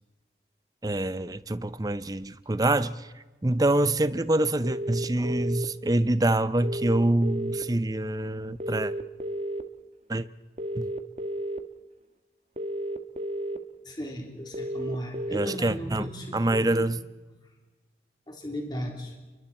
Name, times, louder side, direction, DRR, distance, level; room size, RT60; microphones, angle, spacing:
voice 1, 0.8-3.1 3.4-8.9 10.1-10.3 10.8-10.9 15.3-16.1 16.3-17.0, right 1 dB, 20° right, 15 dB, 0.7 m, -26 dB
sound 1, 4.6-5.7 6.6-7.6 8.6-9.6 10.6-11.6 12.6-13.6 14.5-15.6 16.5-16.6, right 1 dB, 35° right, 1.3 m, -32 dB
voice 2, 13.8-16.9 18.3-19.1, equal, 25° left, 1 dB, 3.5 m, -36 dB
29.0 x 23.5 x 4.4 m, 1.2 s
head